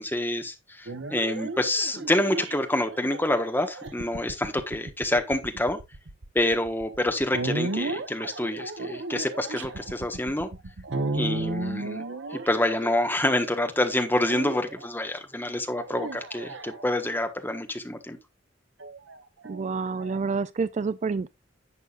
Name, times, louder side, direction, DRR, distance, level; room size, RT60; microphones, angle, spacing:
voice 1, 0.0-5.8 6.3-10.5 11.1-12.0 12.3-18.2, left 1 dB, 10° left, 1.3 m, -27 dB
sound 1, 0.9-13.5 14.3-14.9 15.7-17.2 18.8-20.2, right 2 dB, 80° right, 1.0 m, -35 dB
voice 2, 19.5-21.3, right 4 dB, 40° right, 0.4 m, -28 dB
11.0 x 8.0 x 2.5 m
head